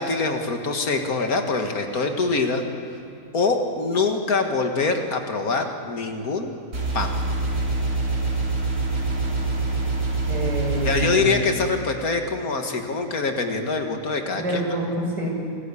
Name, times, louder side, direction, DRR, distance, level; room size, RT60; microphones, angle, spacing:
voice 1, 0.0-2.6 3.3-6.5 6.9-7.1 10.8-14.6, left 3 dB, 55° left, 5 dB, 2.1 m, -24 dB
sound 1, 6.7-11.1, right 3 dB, 55° right, 3.5 m, -25 dB
voice 2, 10.3-11.4 14.3-15.3, right 1 dB, 75° right, -3 dB, 7.0 m, -27 dB
26.0 x 14.5 x 8.4 m, 2.8 s
omnidirectional pair, 1.8 m